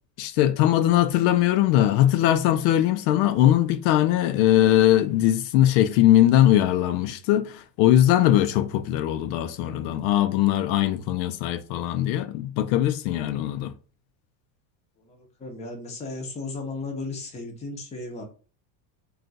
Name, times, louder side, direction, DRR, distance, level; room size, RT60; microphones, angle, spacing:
voice 1, 0.2-13.7, left 12 dB, 80° left, 0.6 m, -20 dB
voice 2, 15.0-18.2, left 3 dB, 15° left, 0.6 m, -35 dB
2.4 x 2.4 x 3.9 m
cardioid pair, 150°, 49 cm